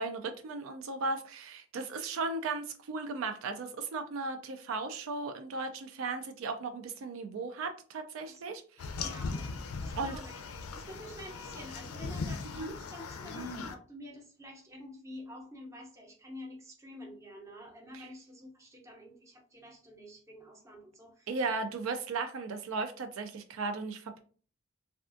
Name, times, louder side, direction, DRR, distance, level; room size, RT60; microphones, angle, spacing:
voice 1, 0.0-8.9 10.0-10.1 12.5-12.7 17.9-18.1 21.3-24.2, right 3 dB, 70° right, 7 dB, 0.4 m, -36 dB
sound 1, 8.8-13.7, left 4 dB, 85° left, 0.5 m, -39 dB
voice 2, 9.0-9.5 9.8-10.4 10.7-21.4, left 1 dB, 15° right, 0 dB, 0.6 m, -48 dB
3.4 x 2.3 x 2.4 m, 0.41 s
head